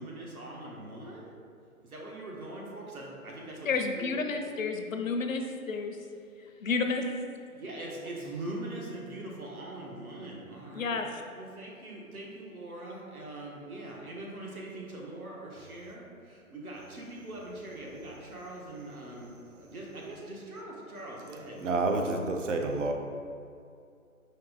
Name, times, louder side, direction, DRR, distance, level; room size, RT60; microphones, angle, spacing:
voice 1, 0.0-1.3 1.8-4.3 7.5-11.0 11.3-21.6, right 1 dB, 85° right, -3 dB, 1.3 m, -42 dB
voice 2, 3.6-6.0 6.6-7.2 10.7-11.2, left 4 dB, 65° left, 5 dB, 0.6 m, -31 dB
voice 3, 21.6-22.9, right 3 dB, 60° right, 3 dB, 0.7 m, -28 dB
4.5 x 3.0 x 3.9 m, 2.4 s
figure-of-eight pair, 155°, 43 cm